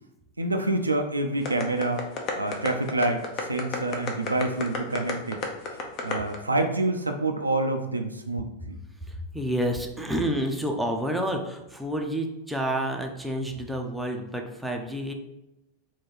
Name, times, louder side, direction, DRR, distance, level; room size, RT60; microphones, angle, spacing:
voice 1, 0.4-2.1 2.4-5.4 5.8-8.8, right 2 dB, 80° right, 5 dB, 0.4 m, -27 dB
sound 1, 1.4-6.4, left 4 dB, 35° left, 0.6 m, -30 dB
voice 2, 9.0-15.1, equal, 5° right, 2 dB, 0.5 m, -29 dB
3.7 x 2.3 x 4.4 m, 0.88 s
figure-of-eight pair, 90°, 0 cm